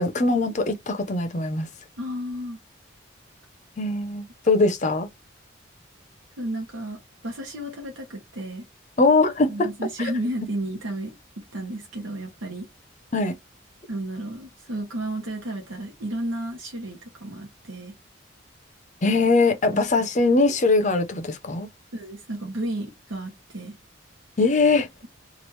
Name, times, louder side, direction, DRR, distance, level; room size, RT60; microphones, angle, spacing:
voice 1, 0.0-1.7 3.8-5.1 9.0-9.7 13.1-13.4 19.0-21.7 24.4-24.9, left 3 dB, 35° left, 0.6 m, -21 dB
voice 2, 2.0-2.6 6.4-8.7 9.5-12.7 13.9-18.0 19.7-19.8 21.9-23.8, right 1 dB, 85° right, 0.9 m, -32 dB
3.1 x 2.4 x 3.1 m
head